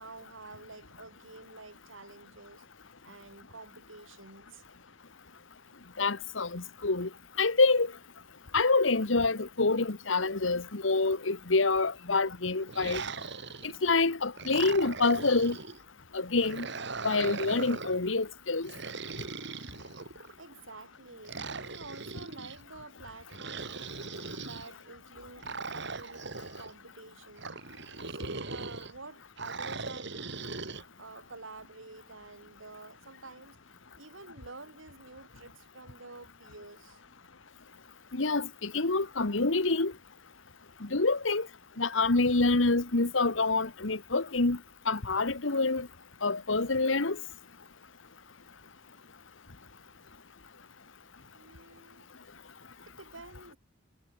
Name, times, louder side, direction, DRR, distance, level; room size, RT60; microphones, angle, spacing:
voice 1, 0.0-2.7 3.0-4.6 20.4-23.9 24.4-27.6 28.0-30.5 31.0-33.6 34.0-37.0 51.3-52.1 52.9-53.6, right 3 dB, 80° right, 5.7 m, -49 dB
voice 2, 6.0-7.1 7.4-7.9 8.5-13.0 13.8-15.6 16.1-16.7 17.0-18.7 38.1-39.9 40.8-41.5 41.8-44.6 44.8-45.9 46.2-47.2, left 3 dB, 75° left, 1.6 m, -27 dB
sound 1, 12.7-13.9 14.4-15.8 16.4-18.0 18.6-20.3 21.2-22.6 23.3-24.7 25.4-26.7 27.4-28.9 29.4-30.8, right 4 dB, 65° right, 4.2 m, -39 dB
head